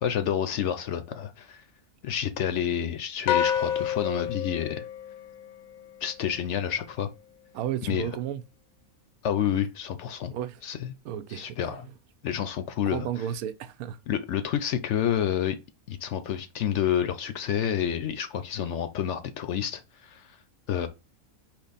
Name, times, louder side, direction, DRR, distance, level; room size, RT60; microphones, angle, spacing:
voice 1, 0.0-1.6 2.0-4.8 6.0-7.1 7.9-8.1 9.2-10.3 10.6-10.9 11.3-11.9 12.2-13.1 14.1-15.6 15.9-20.4 20.7-20.9, left 9 dB, 65° left, 0.8 m, -29 dB
sound 1, 3.3-5.8, left 9 dB, 85° left, 1.1 m, -28 dB
voice 2, 7.5-8.4 10.3-10.6 11.0-11.8 12.9-14.0, right 10 dB, 85° right, 1.1 m, -33 dB
4.4 x 2.9 x 4.0 m
omnidirectional pair, 1.5 m